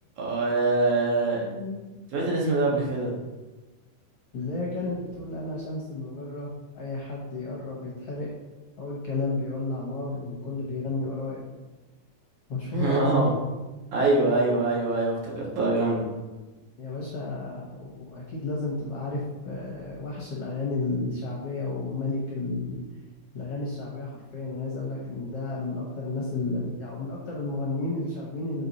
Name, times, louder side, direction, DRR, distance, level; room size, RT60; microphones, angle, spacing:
voice 1, 0.2-1.5 2.1-3.1 12.7-13.3 13.9-16.0, right 2 dB, 65° right, -3 dB, 2.7 m, -24 dB
voice 2, 1.3-1.8 4.3-8.3 8.8-11.4 12.5-13.3 16.8-22.8 23.3-28.7, left 2 dB, 60° left, -4 dB, 1.7 m, -32 dB
7.6 x 4.5 x 4.1 m, 1.1 s
omnidirectional pair, 3.9 m